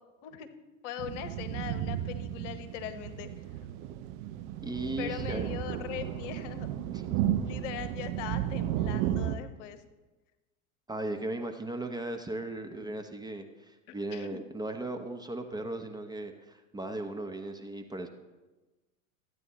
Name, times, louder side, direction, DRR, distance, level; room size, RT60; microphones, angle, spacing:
voice 1, 0.8-3.3 5.0-6.7 7.4-9.8 13.9-14.4, left 10 dB, 60° left, 10 dB, 1.0 m, -40 dB
sound 1, 1.0-9.4, right 11 dB, 50° right, 0.8 m, -33 dB
voice 2, 4.6-5.7 6.9-7.3 10.9-18.1, right 2 dB, 10° right, 5 dB, 0.7 m, -37 dB
14.0 x 9.2 x 3.0 m, 1.2 s
figure-of-eight pair, 80°, 42 cm